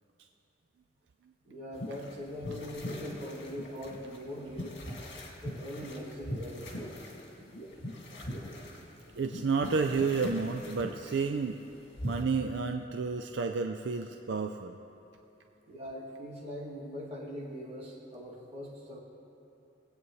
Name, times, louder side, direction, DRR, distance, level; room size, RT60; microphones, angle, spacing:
voice 1, 1.4-4.8 5.4-6.9 15.7-19.0, left 1 dB, 35° right, -7 dB, 2.5 m, -41 dB
sound 1, 1.7-12.2, left 1 dB, 70° left, 2.0 m, -42 dB
voice 2, 9.2-11.6 12.0-14.7, right 4 dB, 70° right, 5 dB, 0.4 m, -31 dB
22.5 x 8.5 x 3.2 m, 2.9 s
head